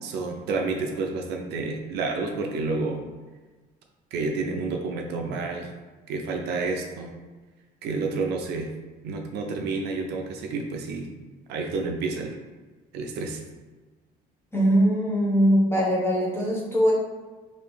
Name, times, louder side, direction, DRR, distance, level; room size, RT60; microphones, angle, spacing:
voice 1, 0.0-3.0 4.1-5.7 6.1-7.1 7.8-8.7 9.0-11.1 11.5-12.4 12.9-13.4, right 3 dB, 80° right, 2 dB, 0.5 m, -29 dB
voice 2, 14.5-16.9, equal, 15° left, -4 dB, 0.7 m, -21 dB
3.1 x 2.6 x 3.3 m, 1.3 s
cardioid pair, 110°, 17 cm